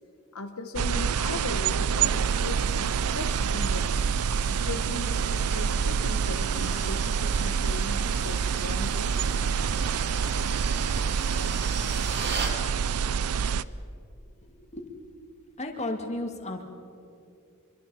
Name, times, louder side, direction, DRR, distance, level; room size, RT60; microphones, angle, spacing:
voice 1, 0.3-4.0 4.5-9.5, left 2 dB, 75° left, 6 dB, 1.2 m, -38 dB
sound 1, 0.8-13.6, right 6 dB, 90° right, 0.6 m, -27 dB
sound 2, 1.7-12.6, right 4 dB, 50° right, 2.8 m, -39 dB
voice 2, 15.6-16.6, left 1 dB, 30° left, 3 dB, 2.2 m, -33 dB
26.0 x 23.5 x 5.6 m, 2.5 s
head